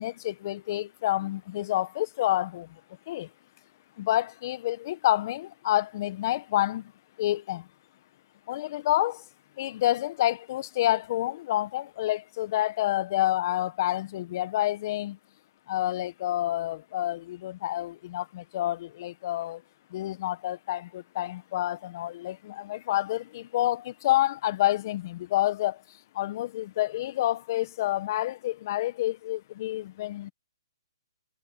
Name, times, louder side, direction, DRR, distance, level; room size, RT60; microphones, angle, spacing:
voice 1, 0.0-2.7 3.1-3.3 4.0-6.9 7.2-7.7 8.5-9.2 9.6-15.2 15.7-19.6 19.9-25.8 26.1-30.3, left 14 dB, 45° left, 1.4 m, -28 dB
hypercardioid pair, 145°, 3 cm